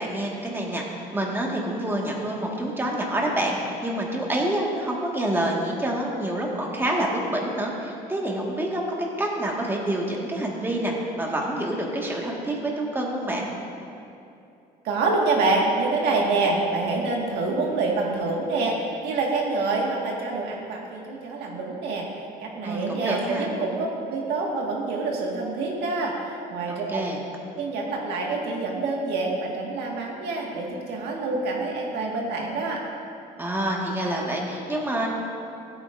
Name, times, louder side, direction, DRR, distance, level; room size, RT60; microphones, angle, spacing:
voice 1, 0.0-8.8 9.2-13.5 22.6-23.5 26.7-27.2 33.4-35.1, right 1 dB, 15° right, -2 dB, 1.8 m, -27 dB
voice 2, 14.8-22.1 22.4-27.0 27.6-32.8, right 3 dB, 80° right, -1 dB, 1.8 m, -26 dB
16.0 x 8.8 x 2.6 m, 2.6 s
cardioid pair, 110°, 17 cm